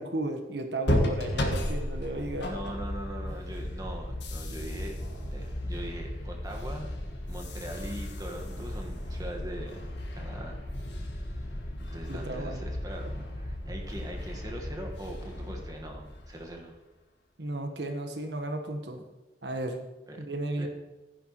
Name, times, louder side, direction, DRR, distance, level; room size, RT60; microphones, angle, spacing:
voice 1, 0.0-2.5 12.1-12.7 17.4-19.0 19.4-19.8 20.2-20.7, right 1 dB, 75° right, 5 dB, 1.2 m, -34 dB
sound 1, 0.8-16.6, left 1 dB, 80° left, 1.6 m, -34 dB
voice 2, 2.4-5.0 5.3-6.9 7.3-9.8 10.1-10.6 11.8-16.7 20.1-20.2 20.6-20.7, right 1 dB, 20° right, 1 dB, 1.4 m, -41 dB
15.0 x 10.5 x 3.0 m, 1.1 s
head